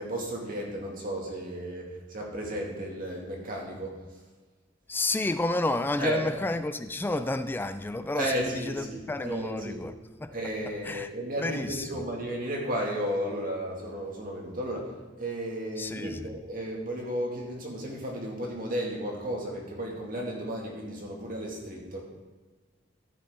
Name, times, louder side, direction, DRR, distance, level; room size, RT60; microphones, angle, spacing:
voice 1, 0.0-4.0 6.0-6.2 8.1-9.8 10.3-22.0, equal, 50° right, 2.3 m, -33 dB
voice 2, 4.9-9.9 10.2-10.3 10.8-11.1 11.4-12.0 15.8-16.3, left 2 dB, 10° left, 0.3 m, -31 dB
13.5 x 6.7 x 3.8 m
head